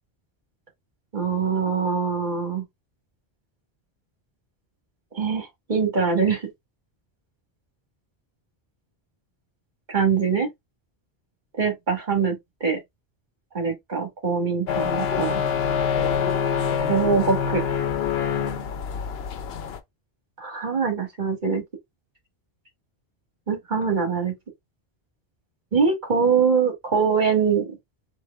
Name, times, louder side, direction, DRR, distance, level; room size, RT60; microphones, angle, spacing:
voice 1, 1.1-2.6 5.1-6.5 9.9-10.5 11.6-12.8 13.5-15.4 16.9-17.6 20.4-21.6 23.5-24.3 25.7-27.8, right 5 dB, 45° right, 1.7 m, -23 dB
sound 1, 14.7-19.8, left 7 dB, 70° left, 0.9 m, -25 dB
4.7 x 2.6 x 3.3 m
omnidirectional pair, 1.1 m